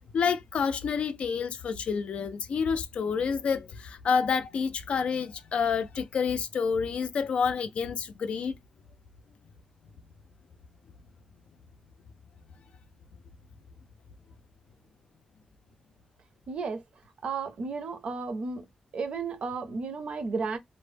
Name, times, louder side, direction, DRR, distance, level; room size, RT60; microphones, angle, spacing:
voice 1, 0.1-8.6, left 6 dB, 70° left, 0.4 m, -28 dB
voice 2, 16.5-16.8 17.2-18.6 18.9-20.6, right 4 dB, 60° right, 0.5 m, -33 dB
2.1 x 2.0 x 3.2 m
wide cardioid pair, 170°, 2 cm